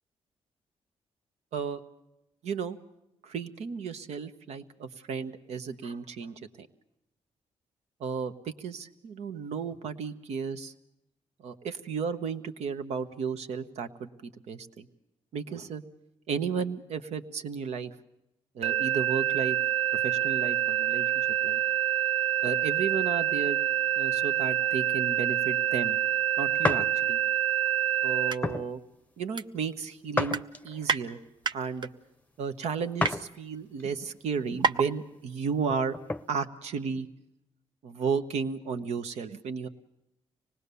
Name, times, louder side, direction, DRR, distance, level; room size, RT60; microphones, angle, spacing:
voice 1, 2.4-2.8 3.2-6.7 8.0-8.3 8.6-10.7 11.4-14.9 15.3-15.8 16.3-17.9 18.5-19.6 20.0-21.0 21.4-21.6 22.4-23.6 24.0-26.0 26.4-27.2 28.0-28.8 29.2-31.2 31.5-31.9 32.4-35.9 36.3-37.1 37.8-39.7, right 6 dB, 80° right, 9 dB, 1.2 m, -33 dB
sound 1, 18.6-28.3, right 12 dB, 60° right, 1.6 m, -27 dB
sound 2, 26.6-26.9 27.5-27.7 28.4-28.7 30.1-30.9 33.0-33.3 33.8-33.9 35.6-36.3, left 2 dB, 15° left, 0.7 m, -30 dB
sound 3, 28.1-28.4 28.8-28.9 29.4-29.9 30.2-31.0 31.4-31.9 32.5-33.2 33.9-34.0 34.2-34.3 34.6-34.9 35.2-35.3, right 5 dB, 45° right, 0.7 m, -29 dB
25.0 x 19.0 x 6.9 m, 0.89 s
cardioid pair, 85°, 11 cm